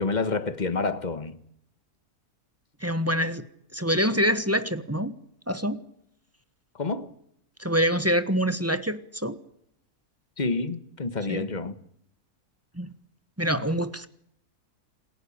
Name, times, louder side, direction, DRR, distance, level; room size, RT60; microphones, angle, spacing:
voice 1, 0.0-1.4 6.7-7.1 10.4-11.8, left 3 dB, 30° left, 1.4 m, -28 dB
voice 2, 2.8-3.4 3.7-5.1 5.5-5.8 7.6-9.4 11.3-11.4 12.8-12.9 13.4-14.1, equal, 10° right, 1.1 m, -25 dB
27.5 x 17.0 x 8.7 m
omnidirectional pair, 1.6 m